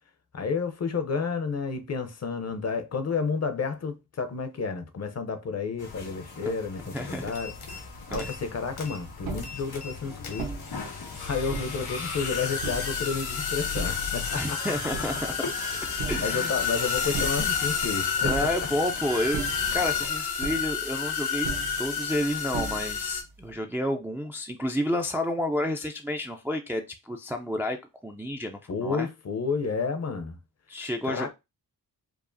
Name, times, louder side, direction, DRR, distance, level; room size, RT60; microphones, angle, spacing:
voice 1, 0.3-7.5 8.1-10.5 11.2-14.6 15.9-18.7 28.7-30.4 31.0-31.3, left 5 dB, 40° left, 0.6 m, -31 dB
sound 1, 5.8-20.1, left 5 dB, 90° left, 2.1 m, -41 dB
voice 2, 6.9-7.3 8.1-8.3 14.4-15.3 16.1-16.5 18.2-21.5 21.8-29.1 30.7-31.3, left 1 dB, 5° right, 0.3 m, -30 dB
sound 2, 7.2-23.5, right 5 dB, 70° right, 1.1 m, -40 dB
sound 3, 7.3-7.8 8.1-8.5 8.8-9.0 9.4-9.9 10.2-23.2, left 6 dB, 75° left, 1.2 m, -31 dB
4.7 x 2.4 x 2.6 m
wide cardioid pair, 145°, 38 cm